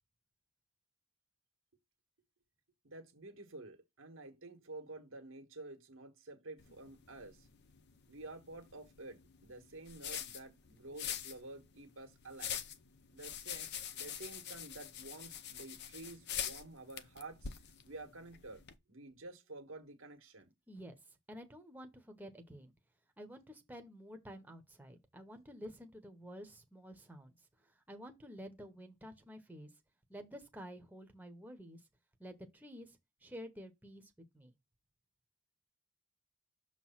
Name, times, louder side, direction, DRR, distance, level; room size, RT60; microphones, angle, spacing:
voice 1, 2.8-7.5 8.1-12.6 13.1-17.5 17.8-18.6 18.9-20.5, right 2 dB, 90° right, 1.5 m, -50 dB
sound 1, 6.6-18.7, left 9 dB, 55° left, 0.7 m, -45 dB
voice 2, 20.7-21.0 21.3-22.7 23.2-27.3 27.9-29.7 30.1-31.8 32.2-34.5, equal, 10° right, 1.0 m, -50 dB
6.8 x 3.1 x 5.7 m
head